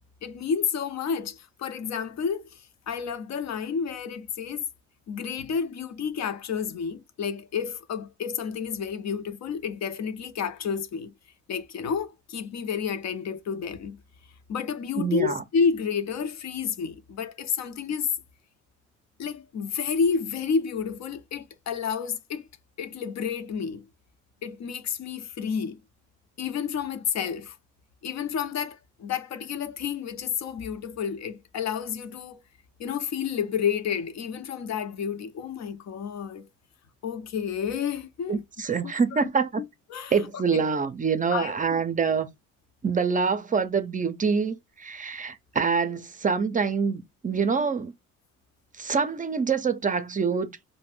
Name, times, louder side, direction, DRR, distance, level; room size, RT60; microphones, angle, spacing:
voice 1, 0.2-4.6 5.1-11.1 11.5-14.0 14.5-18.1 19.2-22.5 22.8-23.8 24.4-25.8 26.4-27.6 28.0-32.4 32.8-36.5 37.0-38.4 38.8-39.3 39.6-40.6 41.3-41.8, left 6 dB, 60° left, 0.6 m, -30 dB
voice 2, 15.0-15.4 38.3-39.6 40.1-42.3 42.8-47.9 48.8-50.7, right 5 dB, 25° right, 0.4 m, -26 dB
2.4 x 2.1 x 3.3 m
cardioid pair, 90°, 30 cm